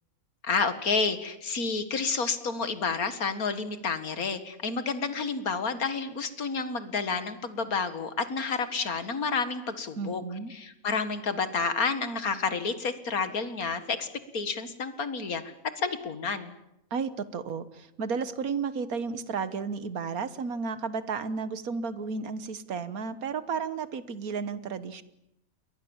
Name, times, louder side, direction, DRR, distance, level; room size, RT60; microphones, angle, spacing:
voice 1, 0.4-10.2 10.5-14.1 14.3-16.5, left 4 dB, 90° left, 11 dB, 2.2 m, -30 dB
voice 2, 10.0-10.5 16.9-25.0, right 5 dB, 90° right, 14 dB, 1.7 m, -33 dB
29.5 x 22.0 x 7.2 m, 0.86 s
omnidirectional pair, 1.5 m